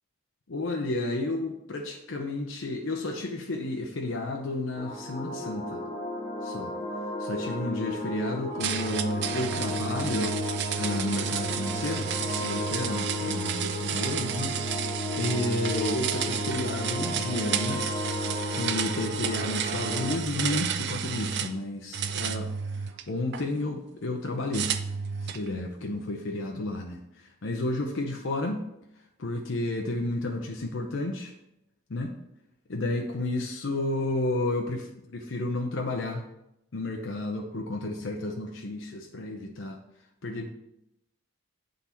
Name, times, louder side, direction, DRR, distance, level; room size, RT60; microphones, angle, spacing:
voice 1, 0.5-5.8 6.4-6.7 7.2-10.4 10.8-12.1 12.4-14.7 15.2-17.8 18.5-24.7 25.2-28.7 29.2-31.3 31.9-32.2 32.7-36.2 36.7-39.8 40.2-40.5, left 2 dB, 60° left, 2 dB, 0.6 m, -32 dB
sound 1, 4.8-20.1, left 2 dB, 20° left, 1.0 m, -34 dB
sound 2, 8.6-21.6 21.9-23.4 24.5-25.5, right 7 dB, 50° right, 0.4 m, -31 dB
8.2 x 3.9 x 4.3 m, 0.84 s
head